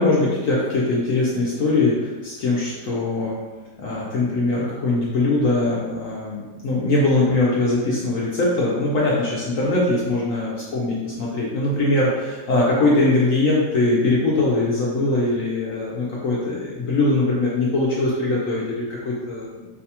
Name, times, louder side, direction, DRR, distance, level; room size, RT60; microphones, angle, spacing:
voice 1, 0.0-3.4 3.8-19.7, left 2 dB, 65° left, -5 dB, 0.8 m, -21 dB
4.8 x 2.3 x 2.8 m, 1.2 s
omnidirectional pair, 1.9 m